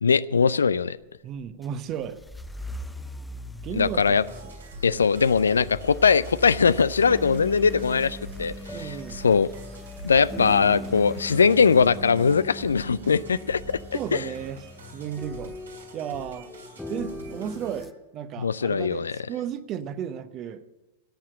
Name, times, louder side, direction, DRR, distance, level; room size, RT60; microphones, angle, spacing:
voice 1, 0.0-1.0 3.7-4.2 4.8-9.5 10.0-13.8 14.1-14.3 18.4-19.2, left 5 dB, 70° left, 19 dB, 0.4 m, -21 dB
voice 2, 1.2-2.2 3.6-4.5 8.7-9.2 13.9-14.6 14.9-15.5 15.9-16.5 16.9-20.6, right 9 dB, 35° right, 12 dB, 0.8 m, -34 dB
sound 1, 1.4-17.9, left 1 dB, 5° left, 0.6 m, -40 dB
sound 2, 3.8-17.8, right 2 dB, 75° right, 3.0 m, -45 dB
17.5 x 7.4 x 7.6 m, 1.1 s
figure-of-eight pair, 90°, 0 cm